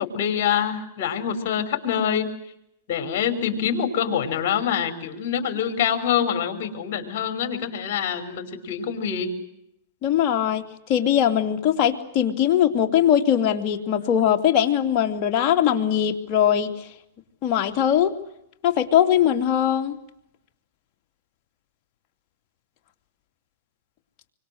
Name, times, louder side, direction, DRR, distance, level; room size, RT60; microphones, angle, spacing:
voice 1, 0.0-2.3 2.9-9.3, left 8 dB, 55° left, 7 dB, 5.8 m, -25 dB
voice 2, 10.0-16.9 17.4-18.1 18.6-20.0, left 10 dB, 40° left, 4 dB, 3.0 m, -21 dB
26.5 x 25.0 x 8.1 m, 0.78 s
hypercardioid pair, 135°, 0 cm